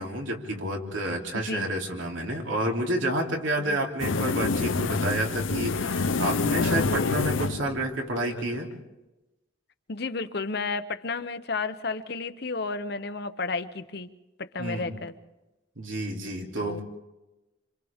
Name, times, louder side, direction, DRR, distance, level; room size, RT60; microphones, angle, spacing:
voice 1, 0.0-8.7 14.6-14.9 15.8-16.8, right 1 dB, 85° right, 0 dB, 3.2 m, -30 dB
voice 2, 1.3-1.7 3.6-3.8 9.9-14.1 14.4-15.1 16.6-16.8, left 4 dB, 55° left, 11 dB, 0.9 m, -32 dB
sound 1, 4.0-8.6, left 3 dB, 85° left, 0.7 m, -27 dB
27.5 x 26.5 x 3.6 m, 1.0 s
head